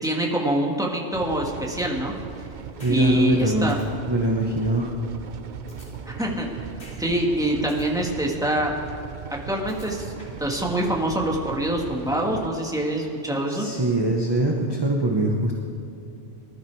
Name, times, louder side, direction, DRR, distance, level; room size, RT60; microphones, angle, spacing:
voice 1, 0.0-2.1 2.9-3.8 6.1-6.5 7.0-8.8 9.3-10.1 10.4-13.7, right 1 dB, 5° right, -1 dB, 1.8 m, -25 dB
sound 1, 1.1-12.5, right 7 dB, 50° right, 0.7 m, -38 dB
sound 2, 2.8-3.0 3.3-3.4 3.7-3.8 5.7-6.5 6.8-7.0 7.3-7.9 9.7-10.5, left 1 dB, 85° left, 3.4 m, -47 dB
voice 2, 2.8-3.7 4.0-4.9 13.5-15.5, right 2 dB, 25° right, 0 dB, 1.1 m, -23 dB
19.5 x 12.0 x 4.8 m, 2.5 s
omnidirectional pair, 1.2 m